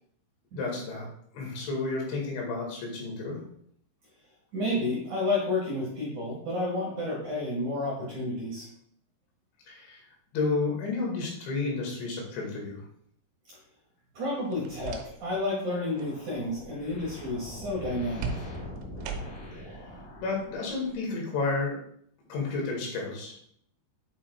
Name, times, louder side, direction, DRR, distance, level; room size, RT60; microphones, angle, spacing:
voice 1, 0.5-3.4 9.7-10.0 10.3-12.8 19.5-19.8 20.2-21.8 22.3-23.3, left 3 dB, 75° left, -1 dB, 4.1 m, -31 dB
voice 2, 4.5-8.7 14.1-18.5, left 2 dB, 55° right, -4 dB, 2.3 m, -31 dB
sound 1, 14.5-15.5 15.8-16.1 18.2-19.6, right 5 dB, 90° right, 3.3 m, -38 dB
sound 2, 15.7-21.1, left 1 dB, 55° left, 3.0 m, -43 dB
8.7 x 7.3 x 2.3 m, 0.65 s
omnidirectional pair, 5.5 m